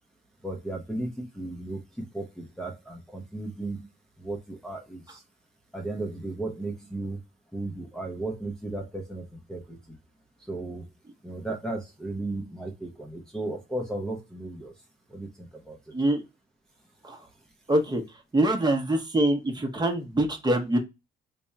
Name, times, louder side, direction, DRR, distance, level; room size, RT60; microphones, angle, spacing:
voice 1, 0.4-3.9 4.2-5.2 5.7-7.2 7.5-10.0 10.5-10.9 11.2-14.7 15.1-15.8, right 2 dB, 5° left, -1 dB, 0.7 m, -35 dB
voice 2, 17.7-18.0 18.3-20.8, right 1 dB, 20° right, 2 dB, 0.9 m, -24 dB
3.4 x 2.3 x 4.1 m, 0.23 s
cardioid pair, 90°, 20 cm